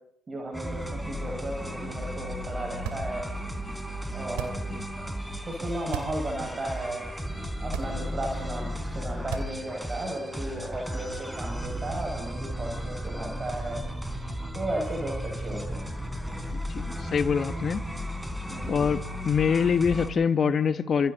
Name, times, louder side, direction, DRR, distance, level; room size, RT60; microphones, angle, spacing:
voice 1, 0.3-3.3 4.1-4.6 5.4-7.1 7.6-13.8 14.5-15.9 18.5-18.9, right 1 dB, 30° right, 1 dB, 5.9 m, -34 dB
sound 1, 0.5-20.1, equal, 5° right, 4.1 m, -35 dB
sound 2, 2.7-3.4 4.3-4.8 5.8-6.3 6.7-6.8 7.6-8.3 9.2-9.8, right 9 dB, 65° right, 2.6 m, -36 dB
voice 2, 16.5-17.8 18.7-19.0 19.2-21.1, left 6 dB, 40° left, 13 dB, 1.2 m, -25 dB
30.0 x 26.5 x 4.0 m, 0.74 s
figure-of-eight pair, 50°, 0 cm